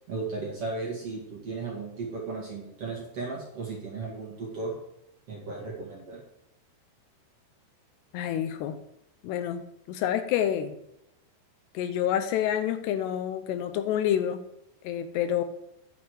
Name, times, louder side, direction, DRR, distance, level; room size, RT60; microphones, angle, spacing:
voice 1, 0.1-4.7 5.3-6.2, right 3 dB, 45° right, -3 dB, 2.3 m, -35 dB
voice 2, 8.1-8.8 9.2-10.8 11.7-14.4 14.8-15.4, left 10 dB, 80° left, 9 dB, 2.9 m, -28 dB
10.0 x 5.8 x 6.3 m, 0.80 s
omnidirectional pair, 4.9 m